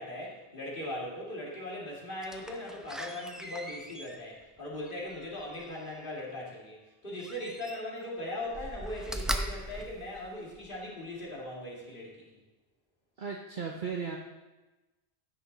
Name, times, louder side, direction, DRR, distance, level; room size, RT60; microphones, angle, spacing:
voice 1, 0.0-6.8 7.0-12.2, left 1 dB, 50° left, -4 dB, 2.5 m, -39 dB
Slam, 2.2-6.1 7.2-8.1 8.5-10.8 11.3-11.4, equal, ahead, 0.5 m, -40 dB
voice 2, 13.2-14.2, right 6 dB, 50° right, 1 dB, 1.0 m, -35 dB
15.5 x 6.2 x 4.0 m, 1.1 s
omnidirectional pair, 1.1 m